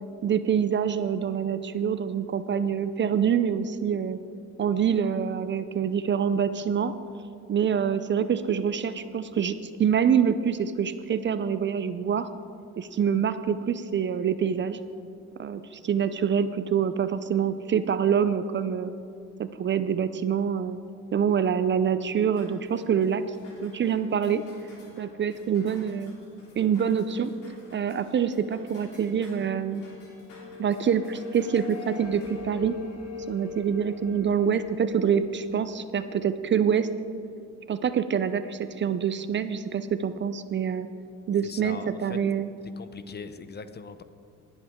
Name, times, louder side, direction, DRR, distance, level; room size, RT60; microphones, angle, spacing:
voice 1, 0.2-4.2 4.6-6.9 7.5-12.3 12.8-14.8 15.4-18.9 19.4-20.8 21.1-23.2 23.6-24.4 25.0-26.1 26.6-27.3 27.7-29.8 30.6-32.7 33.3-36.9 37.7-40.9 41.3-42.5, right 7 dB, 40° right, 12 dB, 0.5 m, -26 dB
sound 1, 22.3-32.3, left 1 dB, 90° left, 3.2 m, -53 dB
sound 2, 29.7-36.8, left 6 dB, 55° left, 2.3 m, -42 dB
voice 2, 41.4-42.2 42.8-44.0, left 5 dB, 35° left, 11 dB, 0.6 m, -41 dB
18.5 x 7.9 x 3.6 m, 2.4 s
cardioid pair, 90°, 30 cm